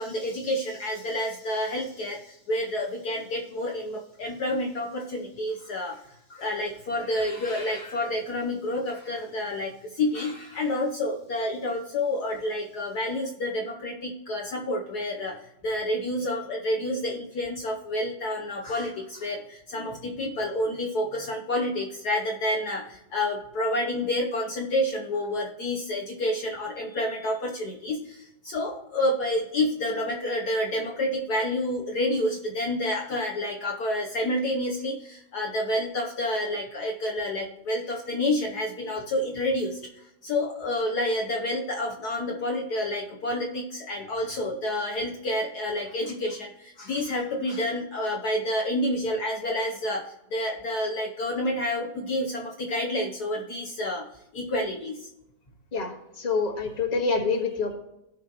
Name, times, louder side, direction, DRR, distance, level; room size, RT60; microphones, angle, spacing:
voice 1, 0.0-54.0 54.3-55.1, left 1 dB, 60° left, -1 dB, 1.4 m, -29 dB
voice 2, 56.2-57.7, left 4 dB, 20° left, 2 dB, 1.5 m, -26 dB
16.5 x 5.6 x 3.0 m, 0.86 s
omnidirectional pair, 2.2 m